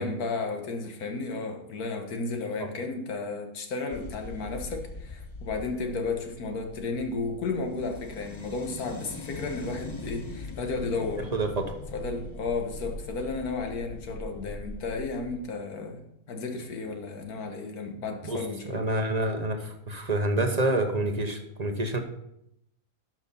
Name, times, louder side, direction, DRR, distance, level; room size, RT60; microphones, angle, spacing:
voice 1, 0.0-11.3 11.9-16.0 16.3-18.9, left 3 dB, 75° left, 4 dB, 1.7 m, -33 dB
sound 1, 3.9-15.4, left 2 dB, 50° left, 0.3 m, -42 dB
voice 2, 11.3-11.8 18.2-22.0, right 1 dB, 30° right, 5 dB, 0.9 m, -28 dB
12.0 x 6.2 x 4.2 m, 0.78 s
omnidirectional pair, 1.6 m